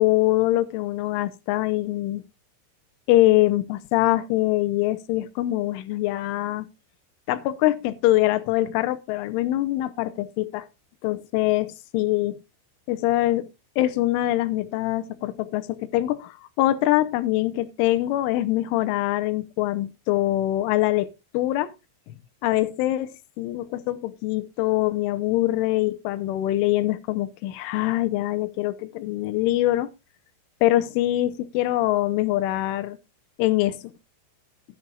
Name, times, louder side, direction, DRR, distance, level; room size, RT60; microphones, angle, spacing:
voice 1, 0.0-2.2 3.1-6.7 7.3-10.7 11.0-12.4 12.9-13.5 13.8-21.7 22.4-29.9 30.6-33.0 33.4-33.9, left 16 dB, 80° left, 3.1 m, -23 dB
13.5 x 9.8 x 2.3 m
omnidirectional pair, 5.7 m